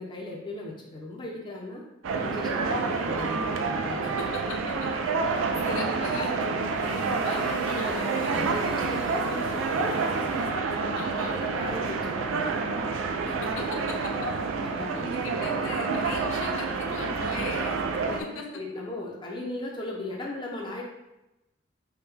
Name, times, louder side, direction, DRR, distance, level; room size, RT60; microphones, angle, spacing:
voice 1, 0.0-1.8 2.2-4.1 7.6-10.3 11.0-12.6 14.6-15.4 18.0-20.8, left 1 dB, 25° left, -2 dB, 0.5 m, -38 dB
sound 1, 2.0-18.2, right 4 dB, 75° right, 0.4 m, -28 dB
voice 2, 5.6-6.5 6.8-8.7 10.9-11.4 13.2-14.1 14.9-17.8 18.2-18.4, left 3 dB, 85° left, 2 dB, 0.6 m, -38 dB
sound 2, 6.7-10.4, right 2 dB, 55° right, 1.2 m, -44 dB
4.5 x 2.1 x 3.3 m, 0.95 s
head